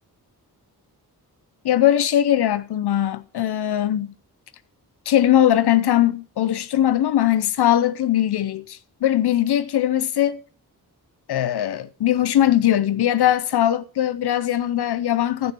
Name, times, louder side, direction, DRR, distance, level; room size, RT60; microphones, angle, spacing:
voice 1, 1.6-4.1 5.1-10.4 11.3-15.5, left 11 dB, 80° left, 0.7 m, -20 dB
11.0 x 6.4 x 6.0 m
cardioid pair, 65°, 38 cm